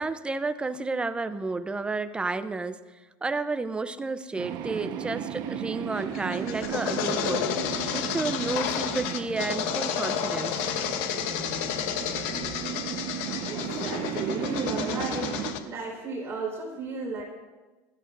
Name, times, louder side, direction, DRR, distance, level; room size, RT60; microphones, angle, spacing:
voice 1, 0.0-2.8 3.2-7.4 7.9-10.7, right 3 dB, 15° right, 11 dB, 0.6 m, -31 dB
sound 1, 4.4-15.5, right 9 dB, 55° right, 1.2 m, -35 dB
sound 2, 6.0-15.6, left 9 dB, 75° left, 1.0 m, -31 dB
voice 2, 13.5-15.3 15.6-17.2, right 3 dB, 35° right, -2 dB, 4.4 m, -34 dB
19.0 x 13.5 x 2.6 m, 1.2 s
supercardioid pair, 120°, 8 cm